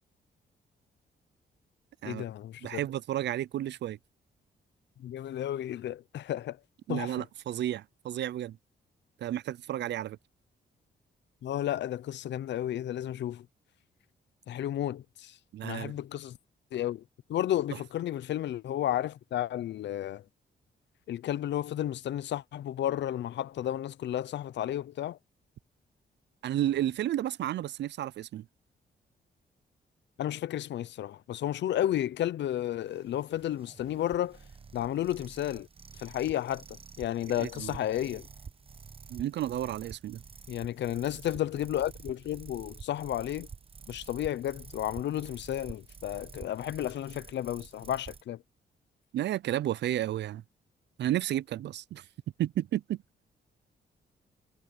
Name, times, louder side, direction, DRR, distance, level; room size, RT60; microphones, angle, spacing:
voice 1, 2.0-2.8 5.0-6.6 6.9-7.1 11.4-13.5 14.5-15.4 15.6-16.4 16.7-17.0 17.3-20.2 21.1-25.2 30.2-34.4 34.7-35.7 36.0-38.3 40.5-43.5 43.9-48.4, left 12 dB, 75° left, 0.6 m, -32 dB
voice 2, 2.6-4.0 6.9-8.6 9.2-10.2 15.5-15.9 26.4-28.5 37.4-37.8 39.1-40.2 49.1-50.4 51.0-52.0 52.4-53.0, right 12 dB, 70° right, 0.5 m, -32 dB
sound 1, 32.8-48.2, right 5 dB, 30° right, 1.1 m, -49 dB
cardioid pair, 130°, 19 cm